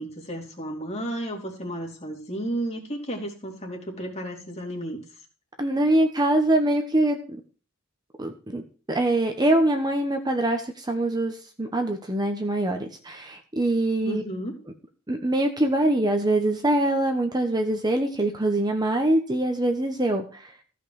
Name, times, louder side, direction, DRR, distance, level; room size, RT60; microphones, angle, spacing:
voice 1, 0.0-5.0 14.0-14.6, right 1 dB, 30° left, 1 dB, 2.9 m, -33 dB
voice 2, 5.6-7.4 8.2-8.6 8.9-14.2 15.1-20.5, right 1 dB, 20° right, 4 dB, 1.1 m, -24 dB
15.0 x 5.5 x 6.5 m, 0.38 s
head